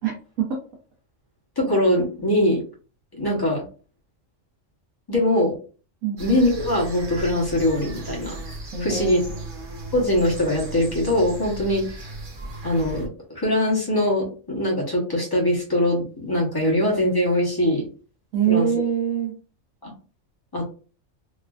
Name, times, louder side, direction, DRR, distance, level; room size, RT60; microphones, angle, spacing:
voice 1, 0.0-0.6 6.0-6.2 8.7-9.2 18.3-19.4, right 9 dB, 90° right, -1 dB, 1.1 m, -24 dB
voice 2, 1.6-2.6 3.1-3.6 5.1-5.5 6.1-8.4 8.8-9.2 9.9-12.1 12.6-13.1 13.3-17.9 18.5-18.7 19.8-19.9 20.5-20.7, left 1 dB, 20° left, -3 dB, 0.7 m, -22 dB
sound 1, 6.2-13.1, right 2 dB, 45° right, 0.9 m, -36 dB
3.1 x 2.4 x 2.3 m, 0.39 s
omnidirectional pair, 1.3 m